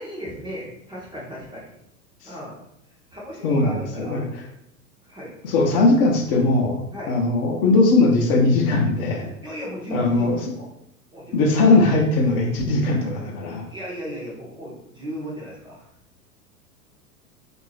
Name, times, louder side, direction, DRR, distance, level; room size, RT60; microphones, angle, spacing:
voice 1, 0.0-1.7 2.2-2.6 3.1-4.3 5.0-5.3 6.9-7.2 9.4-10.7 11.1-11.5 13.7-15.8, equal, 10° right, -5 dB, 0.6 m, -36 dB
voice 2, 3.4-4.4 5.4-9.3 9.9-10.5 11.3-13.7, left 2 dB, 35° left, 1 dB, 0.6 m, -20 dB
3.6 x 2.5 x 3.2 m, 0.78 s
figure-of-eight pair, 95°, 46 cm